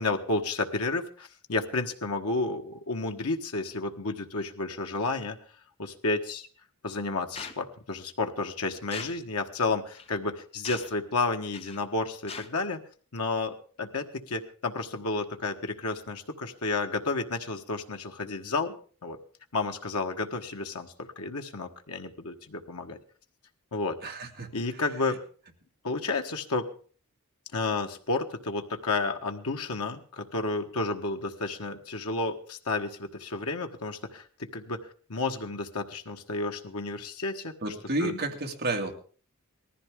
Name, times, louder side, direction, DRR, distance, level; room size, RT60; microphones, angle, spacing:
voice 1, 0.0-5.4 5.8-6.5 6.8-12.8 13.1-18.7 19.0-19.2 19.5-23.0 23.7-24.0 24.5-25.2 25.8-26.7 27.5-37.7 38.0-38.2, left 3 dB, 85° left, 4 dB, 1.4 m, -31 dB
sound 1, 7.3-7.6 8.9-9.2 9.9-10.1 10.6-11.0 11.5-11.8 12.3-12.5, left 5 dB, 25° left, 1.0 m, -40 dB
voice 2, 24.0-24.5 37.6-38.9, right 2 dB, 50° right, 2 dB, 2.2 m, -31 dB
19.0 x 14.5 x 3.7 m, 0.41 s
head